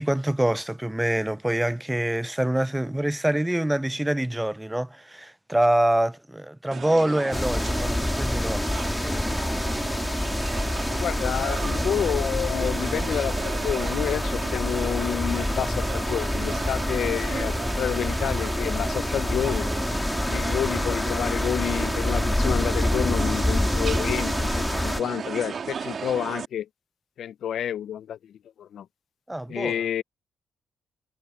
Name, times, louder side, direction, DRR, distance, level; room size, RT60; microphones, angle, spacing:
voice 1, 0.0-8.6 9.0-9.4 29.3-29.8, right 1 dB, 5° right, 0.4 m, -25 dB
sound 1, 6.7-26.5, right 6 dB, 45° right, 2.0 m, -35 dB
sound 2, 7.3-25.0, left 1 dB, 10° left, 1.8 m, -27 dB
voice 2, 10.9-19.7 20.3-26.7 27.2-28.9 29.5-30.0, left 10 dB, 65° left, 0.5 m, -29 dB
cardioid pair, 90°, 0 cm